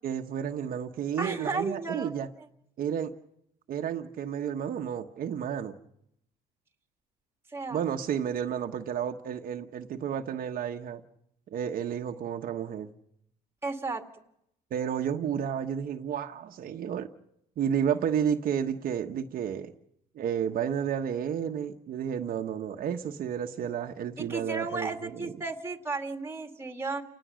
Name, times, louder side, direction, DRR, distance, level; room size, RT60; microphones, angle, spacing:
voice 1, 0.0-2.3 2.8-3.1 3.7-5.8 7.7-11.0 11.5-12.9 14.7-17.1 17.6-19.7 20.1-25.3, right 8 dB, 60° right, 4 dB, 1.2 m, -31 dB
voice 2, 1.2-2.1 2.4-2.5 7.5-7.8 13.6-14.0 24.2-27.0, right 3 dB, 15° right, 5 dB, 2.2 m, -34 dB
29.5 x 18.5 x 6.4 m, 0.76 s
cardioid pair, 110°, 17 cm